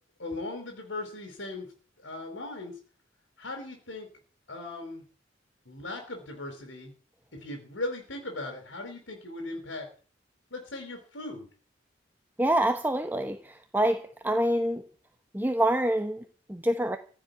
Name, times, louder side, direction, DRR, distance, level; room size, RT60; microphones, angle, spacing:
voice 1, 0.2-1.7 2.0-2.8 3.4-4.1 4.5-5.0 5.6-6.9 7.3-9.9 10.5-11.5, left 2 dB, 80° left, 4.5 m, -38 dB
voice 2, 12.4-14.9 15.3-17.0, right 1 dB, 10° right, 1.0 m, -26 dB
16.0 x 7.4 x 9.4 m
head